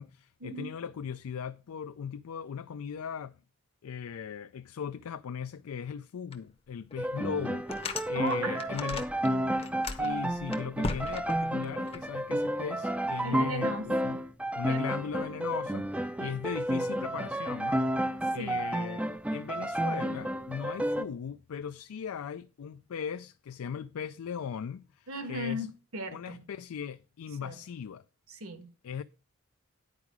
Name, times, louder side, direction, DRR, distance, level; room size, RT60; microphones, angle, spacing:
voice 1, 0.0-3.4 3.8-7.7 8.1-9.1 10.0-14.2 14.6-15.9 16.2-17.9 18.3-25.7 26.1-28.0 28.8-29.0, left 7 dB, 80° left, 0.4 m, -38 dB
sound 1, 6.3-6.4 6.9-7.0 7.4-9.3 9.5-12.0, left 3 dB, 25° left, 0.7 m, -37 dB
sound 2, 7.0-21.0, right 1 dB, 5° right, 0.3 m, -31 dB
voice 2, 8.1-9.0 9.2-9.6 10.0-10.2 13.2-14.2 14.7-14.8 16.2-16.3 18.4-18.6 25.1-26.4 27.4-27.5 28.3-28.7, right 1 dB, 75° right, 1.4 m, -37 dB
9.7 x 4.8 x 5.9 m
head